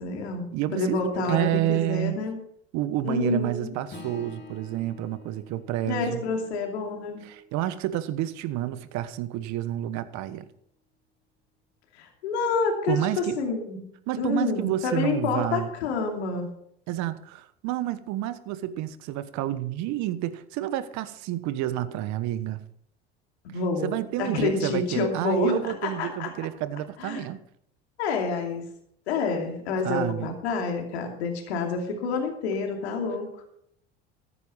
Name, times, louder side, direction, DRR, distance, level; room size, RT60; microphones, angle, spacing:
voice 1, 0.0-2.3 3.0-3.7 5.8-7.2 11.9-13.8 14.2-16.5 23.5-23.9 24.2-26.3 27.0-27.3 28.0-28.6 29.1-33.4, left 4 dB, 80° left, 3 dB, 2.8 m, -28 dB
voice 2, 0.5-2.2 2.7-6.2 7.2-10.5 12.9-13.4 14.1-15.7 16.9-22.6 23.8-27.4 29.8-30.3, right 13 dB, 60° right, 14 dB, 1.3 m, -29 dB
Acoustic guitar / Strum, 3.9-8.7, left 2 dB, 35° left, 2.8 m, -48 dB
14.0 x 10.0 x 5.6 m, 0.70 s
hypercardioid pair, 75°, 32 cm